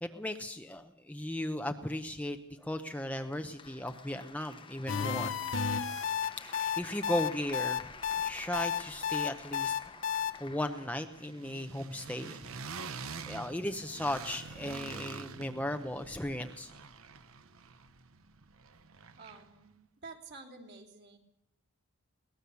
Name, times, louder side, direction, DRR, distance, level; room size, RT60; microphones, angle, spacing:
voice 1, 0.0-5.4 6.4-7.9 8.2-9.7 10.4-12.5 13.2-16.7, left 1 dB, 5° left, 6 dB, 0.7 m, -36 dB
Applause, 2.9-11.9, left 4 dB, 25° left, 1.1 m, -50 dB
sound 1, 4.9-10.3, left 7 dB, 55° left, 1.1 m, -32 dB
sound 2, 6.0-7.2 7.4-19.7, right 5 dB, 70° right, 1.0 m, -48 dB
voice 2, 19.2-19.8 20.0-21.2, right 3 dB, 50° right, 2 dB, 3.0 m, -49 dB
22.0 x 18.5 x 7.0 m, 0.87 s
head